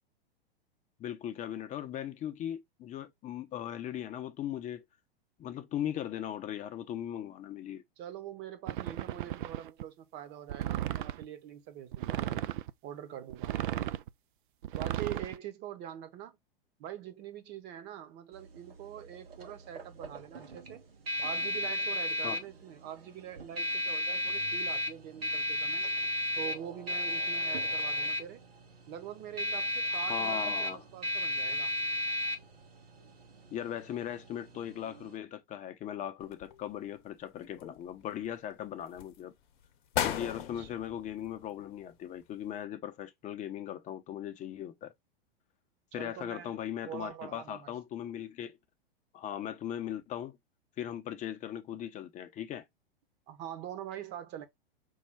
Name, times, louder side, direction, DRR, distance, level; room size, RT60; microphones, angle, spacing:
voice 1, 1.0-4.8 5.4-7.8 22.2-22.4 29.9-30.8 33.5-39.3 40.0-44.9 45.9-48.6 49.1-50.4 50.8-52.6, left 10 dB, 25° left, 0.7 m, -38 dB
voice 2, 8.0-12.2 12.8-13.5 14.7-16.4 16.8-20.9 21.2-25.8 26.4-28.5 28.9-31.7 40.3-40.7 45.9-46.6 46.8-47.7 53.3-54.5, right 10 dB, 35° right, 1.0 m, -44 dB
sound 1, 8.7-9.8 10.5-11.2 11.9-12.7 13.3-14.1 14.6-15.4, right 13 dB, 55° right, 0.4 m, -35 dB
sound 2, 18.3-35.2, left 1 dB, 75° right, 1.3 m, -35 dB
sound 3, 36.2-37.0 37.4-38.3 38.8-39.2 39.6-39.7 39.9-41.9 42.2-42.3, left 9 dB, 55° left, 0.9 m, -37 dB
5.5 x 2.2 x 3.5 m
figure-of-eight pair, 105°, 30 cm